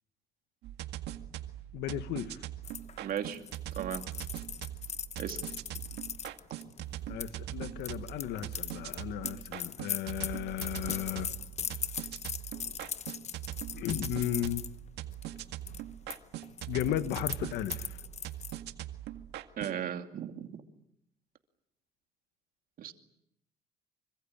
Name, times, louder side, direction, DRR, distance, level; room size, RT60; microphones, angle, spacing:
sound 1, 0.6-19.8, right 13 dB, 80° right, 2.0 m, -41 dB
voice 1, 1.7-2.4 7.1-11.3 13.7-14.6 16.7-18.0, left 12 dB, 80° left, 11 dB, 1.4 m, -35 dB
sound 2, 2.6-7.3 7.8-14.7 15.1-15.4 15.7-16.2 16.4-18.6, left 8 dB, 40° left, 1.1 m, -39 dB
voice 2, 3.0-3.4 3.8-4.0 5.2-5.4 19.6-20.6 22.8-22.9, right 9 dB, 60° right, 5 dB, 2.7 m, -36 dB
26.5 x 25.0 x 8.8 m, 0.78 s
cardioid pair, 110°, 17 cm